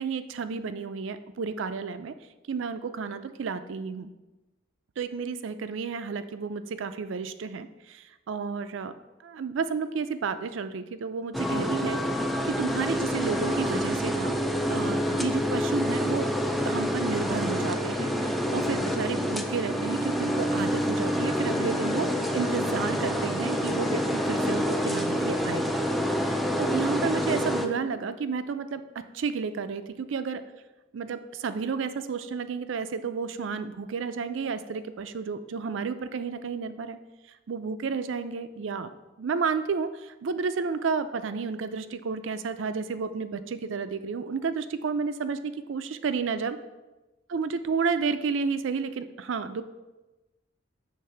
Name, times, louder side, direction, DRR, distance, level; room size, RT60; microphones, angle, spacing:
voice 1, 0.0-2.1 2.5-4.1 5.0-8.9 9.2-12.0 12.5-14.4 14.7-16.3 16.6-25.6 26.2-30.4 30.9-37.0 37.5-38.9 39.2-46.6 47.3-49.6, right 5 dB, 70° right, 11 dB, 0.4 m, -31 dB
sound 1, 11.3-27.7, equal, ahead, 0.3 m, -27 dB
6.6 x 3.4 x 5.6 m, 1.1 s
head